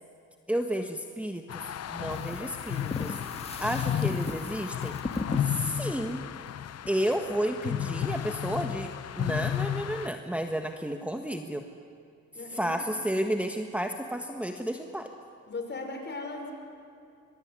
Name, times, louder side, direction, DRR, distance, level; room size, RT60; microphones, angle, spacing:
voice 1, 0.5-3.1 3.6-5.0 5.4-6.2 6.9-8.9 9.2-11.6 12.5-15.1, equal, 5° right, 5 dB, 1.4 m, -32 dB
sound 1, 1.5-10.1, left 10 dB, 55° left, 1.0 m, -33 dB
sound 2, 2.1-6.9, left 3 dB, 20° left, 2.4 m, -38 dB
voice 2, 12.3-13.0 15.5-16.5, left 3 dB, 35° left, 4 dB, 6.0 m, -38 dB
24.0 x 23.5 x 9.8 m, 2.4 s
cardioid pair, 90°, 30 cm